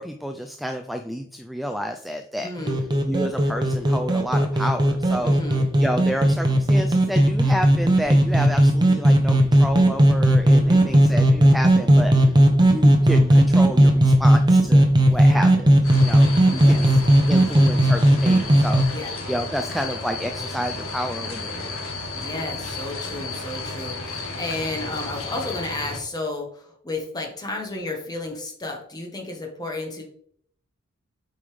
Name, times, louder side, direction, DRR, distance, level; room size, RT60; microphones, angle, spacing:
voice 1, 0.0-2.5 3.0-5.3 5.8-12.3 12.6-17.0 17.3-18.8 19.3-21.8, equal, ahead, 6 dB, 0.4 m, -30 dB
voice 2, 2.4-2.8 5.2-5.7 10.7-11.0 15.1-15.6 16.6-17.0 18.9-19.2 22.1-30.0, left 2 dB, 20° left, 1 dB, 1.5 m, -33 dB
sound 1, 2.7-18.8, right 1 dB, 20° right, 0.9 m, -16 dB
sound 2, 15.8-26.0, left 3 dB, 90° left, 1.5 m, -33 dB
8.2 x 5.4 x 3.4 m, 0.63 s
head